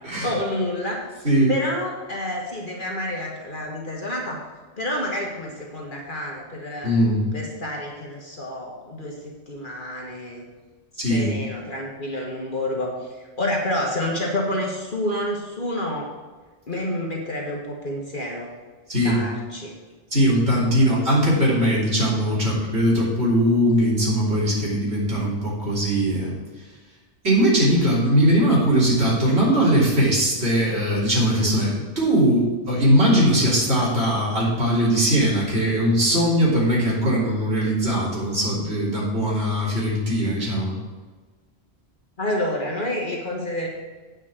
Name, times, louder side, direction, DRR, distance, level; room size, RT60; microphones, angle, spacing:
voice 1, 0.2-1.0 1.5-4.4 4.8-6.9 7.3-10.4 10.9-16.1 16.7-18.5 19.0-19.7 31.4-31.6 42.2-43.7, left 1 dB, 45° left, -1 dB, 1.5 m, -29 dB
voice 2, 6.8-7.2 11.0-11.3 18.9-19.2 20.1-26.3 27.2-40.7, equal, 60° right, -6 dB, 3.7 m, -20 dB
9.1 x 5.3 x 7.4 m, 1.4 s
omnidirectional pair, 1.2 m